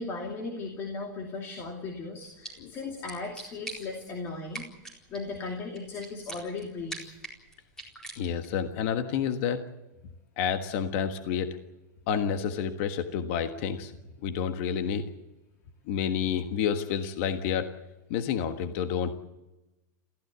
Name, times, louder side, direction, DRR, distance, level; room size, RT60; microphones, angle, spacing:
voice 1, 0.0-7.2, left 3 dB, 25° left, 2 dB, 2.6 m, -37 dB
sound 1, 2.1-8.6, right 2 dB, 5° left, 4.4 m, -45 dB
voice 2, 8.1-9.6 10.4-11.6 12.1-13.9 14.2-15.1 15.9-17.7 18.1-19.2, left 7 dB, 40° left, 7 dB, 1.5 m, -29 dB
28.0 x 15.5 x 8.2 m, 1.0 s
supercardioid pair, 170°, 10 cm